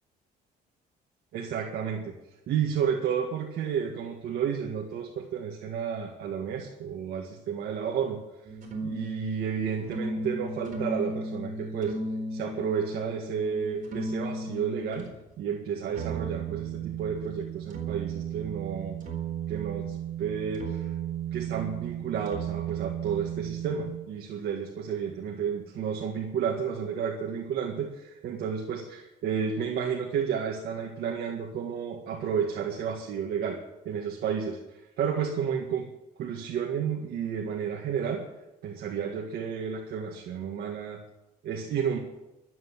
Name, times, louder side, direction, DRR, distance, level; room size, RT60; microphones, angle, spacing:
voice 1, 1.3-2.1 2.5-8.2 8.8-12.0 12.3-15.1 15.4-19.0 19.5-21.0 21.3-33.6 33.9-35.9 36.2-38.2 38.6-41.0 41.4-42.0, right 7 dB, 70° right, 1 dB, 1.9 m, -31 dB
sound 1, 8.4-15.1 15.9-24.0, right 5 dB, 50° right, 4.2 m, -35 dB
12.5 x 7.9 x 9.7 m, 0.96 s
cardioid pair, 110°, 17 cm